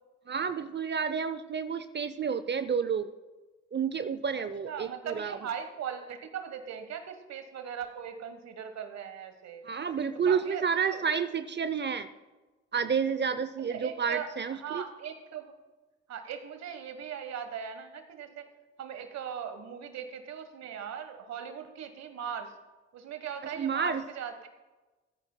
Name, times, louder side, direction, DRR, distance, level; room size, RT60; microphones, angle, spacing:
voice 1, 0.3-3.1 3.7-5.4 9.6-12.1 12.7-14.8 23.5-24.0, right 6 dB, 40° right, 13 dB, 0.6 m, -30 dB
voice 2, 4.7-9.7 10.2-11.0 13.7-15.5 16.1-18.5 18.8-22.5 22.9-24.5, right 7 dB, 65° right, 8 dB, 1.2 m, -39 dB
16.5 x 9.4 x 2.2 m, 1.2 s
hypercardioid pair, 40°, 29 cm